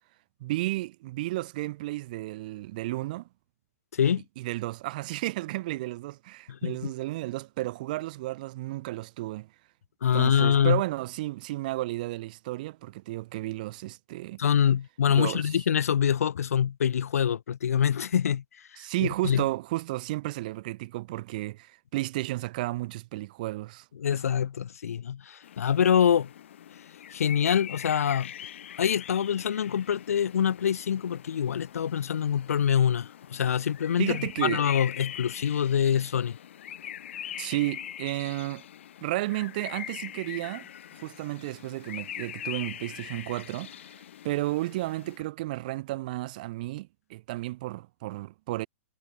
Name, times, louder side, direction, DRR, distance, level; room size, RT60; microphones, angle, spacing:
voice 1, 0.4-3.3 4.4-9.5 10.1-14.4 15.1-15.5 18.8-23.8 34.0-34.6 37.4-38.6 39.0-40.7 41.0-43.7 44.2-48.7, right 18 dB, 35° right, 1.0 m, -32 dB
voice 2, 3.9-4.2 6.5-6.9 10.0-10.8 14.4-18.4 19.0-19.4 24.0-26.3 27.1-28.3 28.8-36.4, left 8 dB, 85° left, 0.8 m, -25 dB
sound 1, 25.4-45.2, left 10 dB, 55° left, 2.4 m, -42 dB
hypercardioid pair, 170°, 8 cm